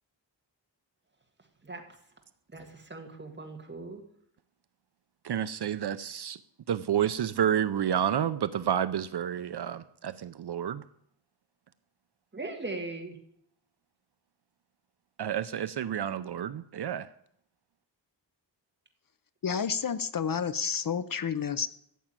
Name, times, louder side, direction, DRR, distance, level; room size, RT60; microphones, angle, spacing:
voice 1, 2.5-4.0 12.3-13.2, right 2 dB, 25° right, 3 dB, 1.9 m, -39 dB
voice 2, 5.2-6.4 6.7-10.8 15.2-17.1, right 9 dB, 60° right, 13 dB, 0.6 m, -30 dB
voice 3, 19.4-21.7, left 7 dB, 50° left, 14 dB, 0.6 m, -30 dB
14.0 x 7.2 x 8.9 m, 0.72 s
wide cardioid pair, 160°, 44 cm